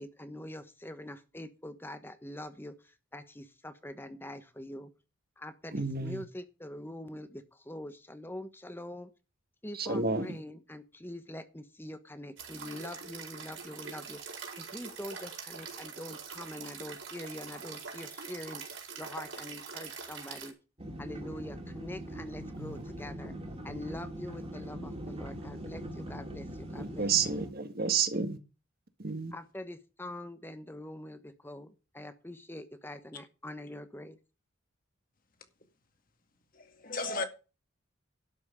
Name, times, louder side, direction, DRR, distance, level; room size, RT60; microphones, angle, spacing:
voice 1, 0.0-4.9 5.4-9.1 9.6-20.5 21.0-23.3 23.6-27.1 29.3-34.2, left 1 dB, 10° left, 1.1 m, -44 dB
voice 2, 5.7-6.2 9.7-10.4 22.6-22.8 26.8-28.4 29.0-29.3, right 5 dB, 50° right, 1.6 m, -31 dB
sound 1, 12.4-20.5, right 5 dB, 75° right, 4.8 m, -44 dB
sound 2, 20.8-27.5, right 1 dB, 30° right, 2.4 m, -42 dB
voice 3, 36.5-37.2, left 3 dB, 45° left, 2.1 m, -35 dB
12.0 x 6.1 x 8.6 m
head